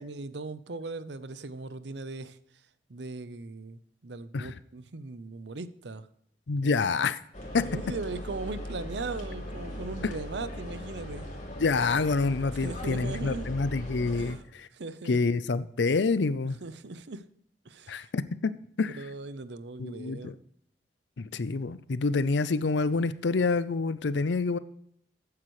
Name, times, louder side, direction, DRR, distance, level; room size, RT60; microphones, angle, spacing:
voice 1, 0.0-2.4 2.9-6.1 6.6-6.9 7.6-11.3 12.5-13.5 14.1-15.2 16.6-17.2 17.6-18.1 18.8-20.4, right 3 dB, 75° right, 14 dB, 0.8 m, -39 dB
voice 2, 6.5-7.2 7.5-7.6 11.6-14.7 15.1-16.6 17.9-18.5 18.8-18.9 19.8-20.3 21.2-24.6, left 4 dB, 90° left, 15 dB, 0.6 m, -27 dB
sound 1, 7.3-14.3, left 1 dB, 45° left, 3.5 m, -39 dB
14.0 x 9.6 x 3.2 m, 0.71 s
head